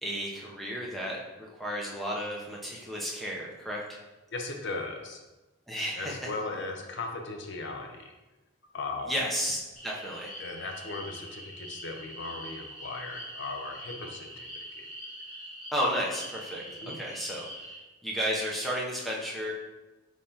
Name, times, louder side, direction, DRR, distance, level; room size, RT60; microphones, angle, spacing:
voice 1, 0.0-4.0 5.7-6.3 9.0-9.6 9.8-10.3 15.7-16.6 16.9-17.5 18.0-19.5, equal, ahead, -4 dB, 0.6 m, -32 dB
voice 2, 4.3-5.2 6.0-8.1 8.7-9.1 10.4-14.9 16.8-17.0, left 3 dB, 55° left, 3 dB, 0.6 m, -37 dB
sound 1, 9.8-17.8, equal, 40° left, 1.4 m, -43 dB
5.4 x 3.2 x 2.8 m, 1.1 s
head